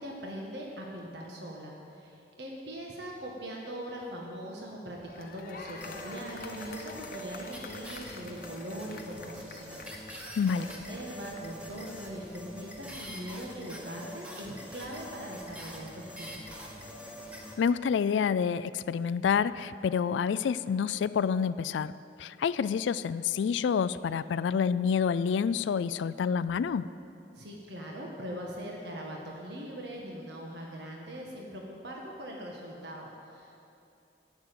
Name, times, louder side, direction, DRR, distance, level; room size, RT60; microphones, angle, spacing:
voice 1, 0.0-10.3 10.5-16.5 27.3-33.5, equal, 70° right, -1 dB, 1.5 m, -41 dB
sound 1, 4.9-11.6, left 4 dB, 50° left, 0.8 m, -48 dB
sound 2, 5.7-17.5, equal, 5° right, 1.3 m, -44 dB
voice 2, 10.4-10.7 17.6-21.9 22.2-26.9, left 6 dB, 85° left, 15 dB, 0.3 m, -28 dB
12.5 x 7.3 x 9.2 m, 2.7 s
head